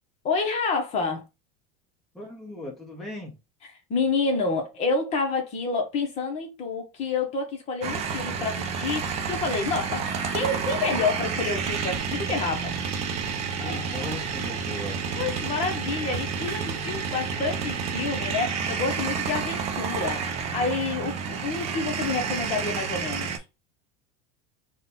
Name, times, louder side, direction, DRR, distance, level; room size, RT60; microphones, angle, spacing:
voice 1, 0.2-1.2 3.9-10.1 10.3-12.7 13.6-14.0 15.1-23.4, left 4 dB, 35° left, 0.9 m, -28 dB
voice 2, 2.1-3.4 13.6-15.0, left 2 dB, ahead, 0.8 m, -38 dB
sound 1, 7.8-23.4, right 6 dB, 35° right, 0.6 m, -30 dB
3.9 x 2.3 x 3.9 m
supercardioid pair, 160°, 20 cm